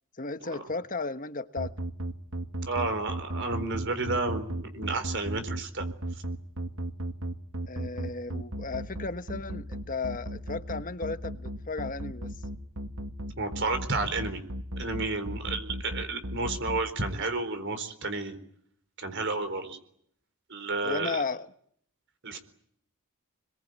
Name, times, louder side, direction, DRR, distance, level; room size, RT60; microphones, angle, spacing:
voice 1, 0.2-1.7 7.7-12.3 20.8-21.5, left 3 dB, 40° left, 1.3 m, -34 dB
sound 1, 1.6-17.1, right 1 dB, 75° right, 2.1 m, -34 dB
voice 2, 2.7-5.8 13.4-14.4 14.8-18.4 19.0-19.8 20.5-21.2 22.2-22.4, right 3 dB, 55° right, 4.2 m, -31 dB
28.0 x 22.0 x 9.3 m
head